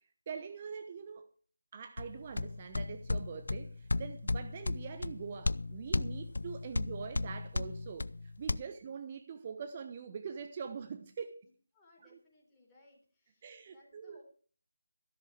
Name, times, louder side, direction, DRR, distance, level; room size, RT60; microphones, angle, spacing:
voice 1, 0.3-1.3 1.7-11.4 12.0-12.2 13.4-14.2, right 6 dB, 30° right, 0.8 m, -44 dB
sound 1, 2.0-8.6, left 2 dB, 65° left, 0.6 m, -35 dB
voice 2, 11.7-14.2, left 2 dB, 10° left, 3.9 m, -64 dB
13.5 x 12.5 x 4.7 m
figure-of-eight pair, 160°, 0 cm